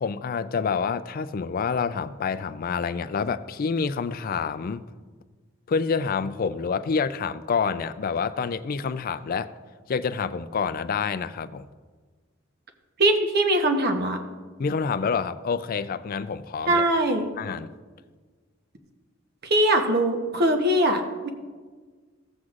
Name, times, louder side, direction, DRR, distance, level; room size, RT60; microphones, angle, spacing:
voice 1, 0.0-4.8 5.7-9.5 9.9-11.7 14.6-16.9 17.4-17.7, left 5 dB, 45° left, 12 dB, 0.3 m, -27 dB
voice 2, 13.0-14.2 16.7-17.3 19.4-21.3, right 1 dB, 50° right, 5 dB, 1.0 m, -22 dB
15.0 x 7.8 x 2.5 m, 1.4 s
head